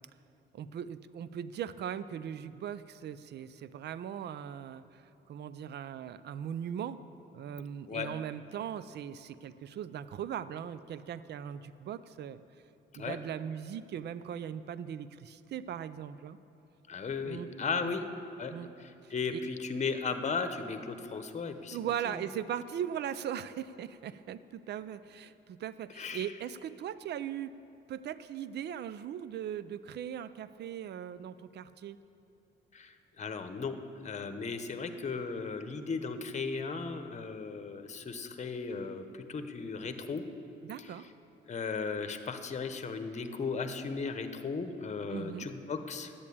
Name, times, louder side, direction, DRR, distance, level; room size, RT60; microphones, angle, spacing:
voice 1, 0.5-5.0 5.3-7.0 7.3-12.4 13.0-16.4 17.2-17.5 17.8-18.0 18.5-18.7 19.0-19.4 21.7-27.5 27.9-32.0 40.6-41.1 45.1-45.5, right 9 dB, 60° right, 15 dB, 0.5 m, -39 dB
voice 2, 16.9-18.1 18.4-18.5 18.8-21.8 22.1-22.2 26.0-26.3 32.7-40.2 41.5-46.1, left 4 dB, 35° left, 8 dB, 1.0 m, -36 dB
10.5 x 8.7 x 8.5 m, 2.8 s
cardioid pair, 90°, 20 cm